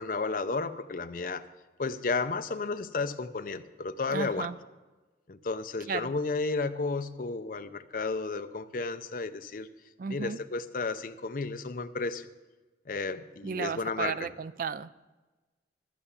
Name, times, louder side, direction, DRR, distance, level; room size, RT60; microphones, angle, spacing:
voice 1, 0.0-1.4 1.8-4.5 5.3-9.7 10.1-12.3 12.9-14.3, left 3 dB, 50° left, 10 dB, 0.6 m, -32 dB
voice 2, 4.1-4.6 5.9-6.1 10.0-10.4 13.4-15.0, right 6 dB, 50° right, 15 dB, 0.4 m, -34 dB
13.5 x 6.7 x 7.1 m, 1.2 s
head